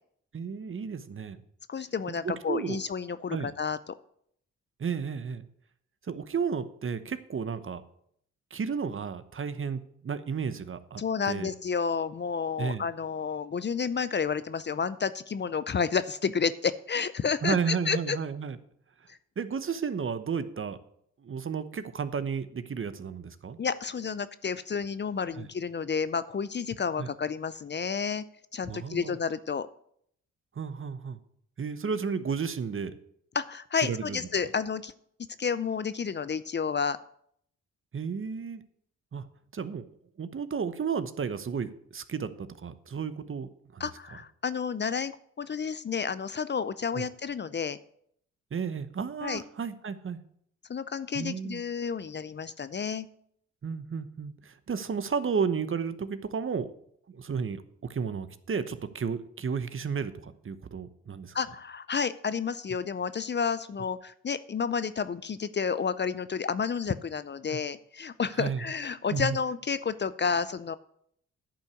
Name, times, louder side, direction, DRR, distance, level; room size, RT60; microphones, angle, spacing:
voice 1, 0.3-1.4 2.2-2.8 3.3-3.5 4.8-5.5 6.1-7.8 8.5-11.5 12.6-12.8 17.4-18.6 19.4-20.8 21.2-23.6 25.4-25.5 27.0-27.1 28.7-29.2 30.6-31.2 31.6-33.0 33.8-34.2 37.9-38.6 39.1-39.2 39.5-39.9 40.2-43.9 46.9-47.0 48.5-50.2 51.1-51.6 53.6-56.7 57.1-61.4 67.5-67.6 68.4-68.6 69.1-69.4, right 6 dB, 40° right, 12 dB, 1.0 m, -33 dB
voice 2, 1.7-3.8 11.0-18.2 19.1-19.2 23.6-28.2 28.5-29.7 33.3-34.9 35.4-37.0 43.8-47.8 49.2-49.4 50.7-53.1 61.3-70.8, left 6 dB, 35° left, 15 dB, 0.6 m, -31 dB
10.0 x 5.6 x 8.2 m, 0.69 s
supercardioid pair, 55°, 31 cm